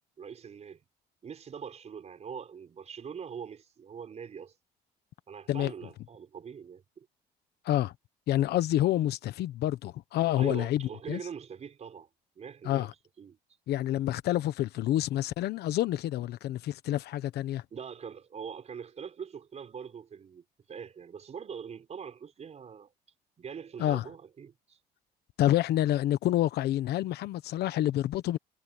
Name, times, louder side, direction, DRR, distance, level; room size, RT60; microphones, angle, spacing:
voice 1, 0.2-0.8 1.2-4.5 5.3-7.1 10.4-12.1 12.4-12.9 13.2-13.4 17.7-22.9 23.4-24.8, right 7 dB, 40° right, 5.3 m, -43 dB
voice 2, 8.3-11.2 12.6-12.9 13.7-17.6 23.8-24.1 25.4-28.4, left 13 dB, 75° left, 1.2 m, -28 dB
cardioid pair, 110°, 17 cm